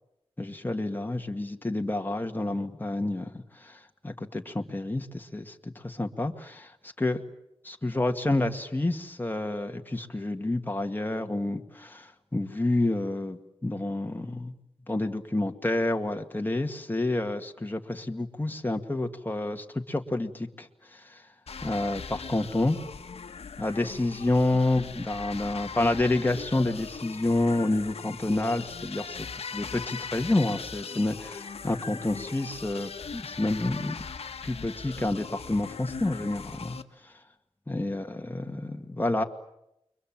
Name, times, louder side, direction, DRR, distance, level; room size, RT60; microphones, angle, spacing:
voice 1, 0.4-6.7 7.0-7.2 7.6-14.5 14.9-21.2 21.6-22.8 23.6-34.1 34.4-36.8 37.7-39.2, left 2 dB, 20° left, 4 dB, 2.0 m, -29 dB
sound 1, 21.5-36.8, left 5 dB, 75° left, 1.5 m, -40 dB
29.5 x 23.5 x 7.5 m, 0.82 s
wide cardioid pair, 75°, 10 cm